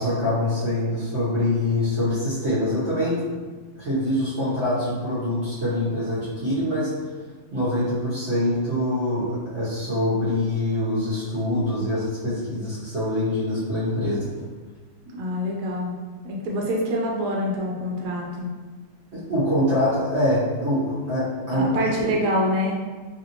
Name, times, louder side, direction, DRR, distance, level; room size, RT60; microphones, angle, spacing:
voice 1, 0.0-3.2 3.7-6.9 7.5-14.3 19.1-21.9, left 1 dB, 45° right, -12 dB, 1.0 m, -24 dB
voice 2, 15.1-15.9 16.2-18.5 21.5-22.8, equal, 70° right, -2 dB, 1.2 m, -26 dB
3.4 x 2.5 x 2.8 m, 1.4 s
omnidirectional pair, 2.1 m